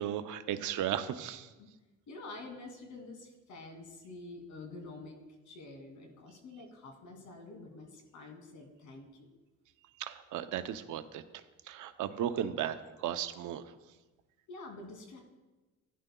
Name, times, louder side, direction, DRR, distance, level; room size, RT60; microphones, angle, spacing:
voice 1, 0.0-1.5 10.0-11.2 11.7-13.6, right 10 dB, 80° right, 10 dB, 0.7 m, -35 dB
voice 2, 2.1-5.2 5.5-9.3 14.5-15.2, left 2 dB, 75° left, 2 dB, 2.6 m, -48 dB
15.5 x 10.0 x 2.3 m, 1.2 s
cardioid pair, 90°, 30 cm